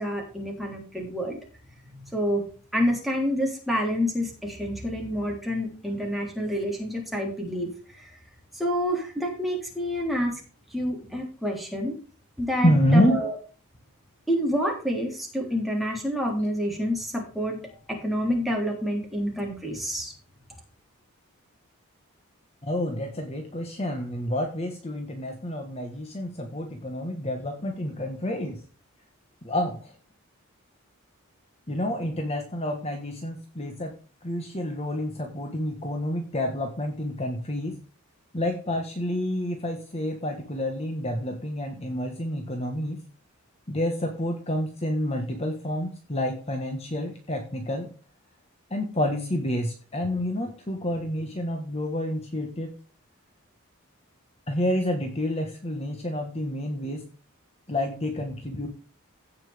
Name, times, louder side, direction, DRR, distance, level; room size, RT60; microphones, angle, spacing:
voice 1, 0.0-1.4 1.9-2.4 2.7-8.1 8.5-10.4 10.7-11.9 12.4-13.4 14.3-17.6 17.9-20.1, equal, ahead, -1 dB, 3.4 m, -28 dB
voice 2, 12.6-13.2 22.6-28.6 29.4-29.9 31.7-33.9 34.2-37.8 38.3-43.0 43.7-47.9 48.7-52.7 54.5-57.0 57.7-58.7, left 1 dB, 30° left, 3 dB, 1.4 m, -28 dB
16.5 x 5.9 x 3.5 m, 0.38 s
head